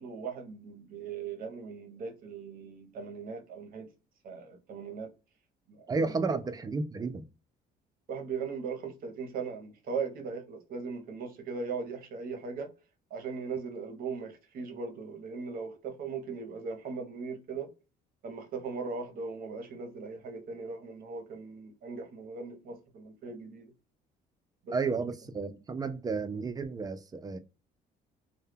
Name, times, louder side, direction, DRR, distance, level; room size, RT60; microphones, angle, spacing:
voice 1, 0.0-3.9 4.2-5.1 5.7-6.4 8.1-12.7 13.1-17.7 18.2-23.7 24.6-25.0, right 5 dB, 60° right, 0.7 m, -39 dB
voice 2, 5.9-7.2 24.7-27.4, right 4 dB, 20° right, 0.3 m, -32 dB
2.2 x 2.1 x 3.2 m
cardioid pair, 110°, 17 cm